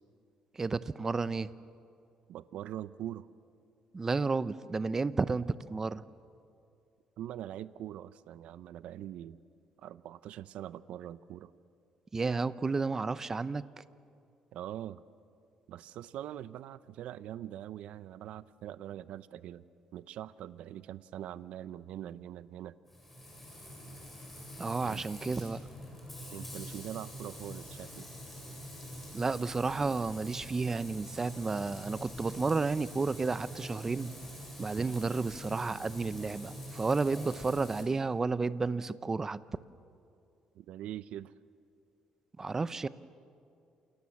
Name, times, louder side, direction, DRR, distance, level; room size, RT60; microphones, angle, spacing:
voice 1, 0.5-1.5 3.9-6.0 12.1-13.6 24.6-25.6 29.1-34.2 34.6-39.4 42.4-42.9, right 4 dB, 20° right, 15 dB, 0.7 m, -32 dB
voice 2, 2.3-3.3 7.2-9.4 9.8-11.5 14.5-15.0 15.7-19.6 19.9-22.8 24.8-25.1 26.3-28.1 40.5-41.3, right 11 dB, 75° right, 15 dB, 0.7 m, -43 dB
Frying (food), 22.9-37.8, equal, 10° left, 7.5 m, -45 dB
28.5 x 28.0 x 7.2 m, 2.4 s
cardioid pair, 130°, 2 cm